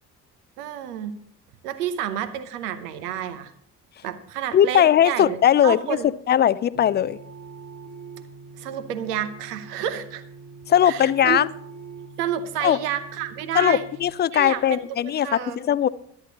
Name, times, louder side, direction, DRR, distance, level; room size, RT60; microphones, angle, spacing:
voice 1, 0.6-1.2 1.6-3.5 4.0-6.1 8.6-10.2 10.8-11.4 12.2-13.8 14.3-15.6, right 10 dB, 75° right, 11 dB, 0.9 m, -30 dB
voice 2, 4.5-7.2 10.7-11.5 12.6-12.8 13.5-15.9, left 10 dB, 25° left, 18 dB, 0.3 m, -19 dB
sound 1, 6.7-14.1, right 4 dB, 30° right, 2.0 m, -43 dB
16.5 x 11.5 x 2.9 m, 0.68 s
figure-of-eight pair, 45°, 46 cm